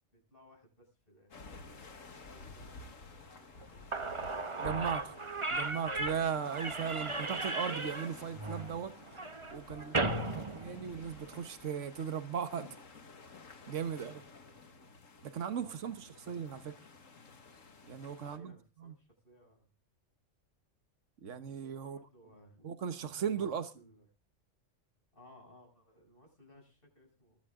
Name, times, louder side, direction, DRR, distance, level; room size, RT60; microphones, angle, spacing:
voice 1, 0.1-1.4 1.7-2.8 3.3-4.0 9.7-10.6 13.9-14.9 15.5-16.4 18.2-19.7 21.6-22.7 23.3-24.0 25.1-27.4, equal, 45° left, 7.8 m, -60 dB
sound 1, 1.3-18.4, left 3 dB, 85° left, 2.2 m, -52 dB
Slam / Squeak, 3.6-3.7 3.9-11.4, right 2 dB, 25° right, 1.1 m, -36 dB
voice 2, 4.6-5.2 5.5-9.2 9.5-9.9 10.3-12.7 13.7-14.2 15.2-16.7 17.9-18.5 21.2-22.0 22.6-23.7, right 7 dB, 70° right, 1.5 m, -37 dB
22.0 x 10.0 x 3.7 m
omnidirectional pair, 1.3 m